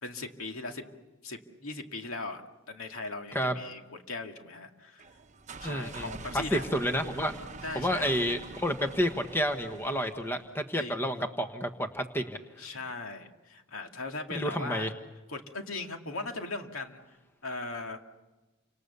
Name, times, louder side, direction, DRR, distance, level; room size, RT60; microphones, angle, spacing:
voice 1, 0.0-0.8 1.2-2.4 2.7-5.0 5.6-6.7 7.6-8.1 10.8-11.0 12.6-14.9 15.3-17.2 17.4-18.0, left 3 dB, 80° left, 4 dB, 2.4 m, -38 dB
sound 1, 5.0-10.6, right 3 dB, 35° right, 1.0 m, -45 dB
voice 2, 5.6-7.4 7.7-12.4 14.3-14.9, equal, 10° left, 7 dB, 1.3 m, -30 dB
30.0 x 26.0 x 6.9 m, 1.1 s
head